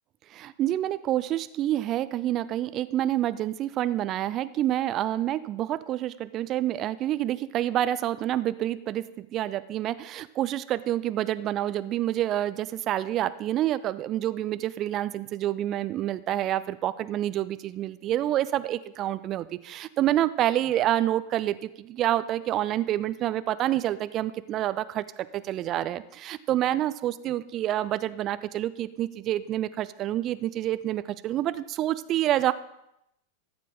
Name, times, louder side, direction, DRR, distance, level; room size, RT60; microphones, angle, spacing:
voice 1, 0.3-32.5, right 13 dB, 35° right, 15 dB, 0.4 m, -28 dB
14.0 x 7.4 x 3.7 m, 0.82 s
figure-of-eight pair, 90°, 0 cm